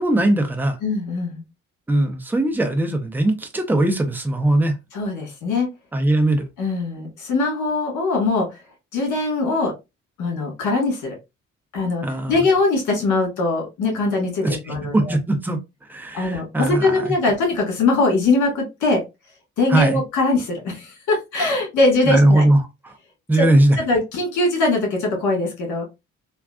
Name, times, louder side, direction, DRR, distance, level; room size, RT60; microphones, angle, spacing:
voice 1, 0.0-0.8 1.9-4.8 5.9-6.5 12.0-12.4 14.4-15.6 15.9-16.9 19.7-20.0 22.1-22.6 23.3-23.8, right 1 dB, 5° right, 0.6 m, -19 dB
voice 2, 0.8-1.4 4.9-5.7 6.6-8.5 8.9-9.7 10.2-11.2 11.7-15.1 16.1-19.0 19.6-22.4 23.3-23.5 23.8-25.8, left 3 dB, 75° left, 1.7 m, -21 dB
3.5 x 2.3 x 2.3 m
cardioid pair, 90°, 30 cm